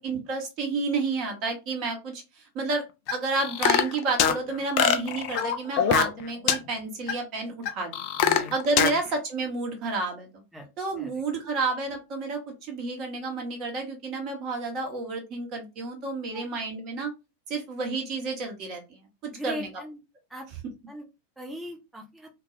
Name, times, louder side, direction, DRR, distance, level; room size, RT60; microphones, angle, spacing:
voice 1, 0.0-2.8 3.1-8.0 8.5-10.4 10.8-17.1 17.5-19.7, right 3 dB, 40° right, 3 dB, 0.8 m, -30 dB
sound 1, 3.1-4.4 4.8-6.2 6.5-6.6 7.1-7.2 7.7-8.9, left 8 dB, 45° left, 0.3 m, -23 dB
voice 2, 8.2-8.5 8.9-9.0 10.5-10.7 11.0-11.1 16.3-16.5 19.3-20.0 20.3-20.5 20.9-21.0 21.4-22.3, equal, 5° right, 2 dB, 0.7 m, -39 dB
2.3 x 2.2 x 2.7 m, 0.26 s
figure-of-eight pair, 90°, 0 cm